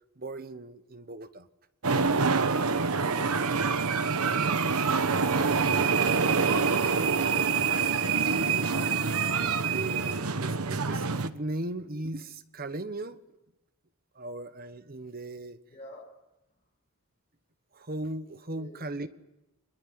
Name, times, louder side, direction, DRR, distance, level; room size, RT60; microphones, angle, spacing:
voice 1, 0.2-1.5 5.2-6.2 6.5-6.9 7.2-7.8 8.4-9.2 9.6-13.2 14.1-15.6 17.7-19.1, right 2 dB, 40° right, 11 dB, 1.3 m, -38 dB
sound 1, 1.8-11.3, right 5 dB, 80° right, 1.1 m, -26 dB
voice 2, 3.0-4.6 15.7-16.1 18.6-18.8, left 1 dB, 30° left, -3 dB, 7.1 m, -49 dB
24.0 x 22.0 x 9.6 m, 0.97 s
head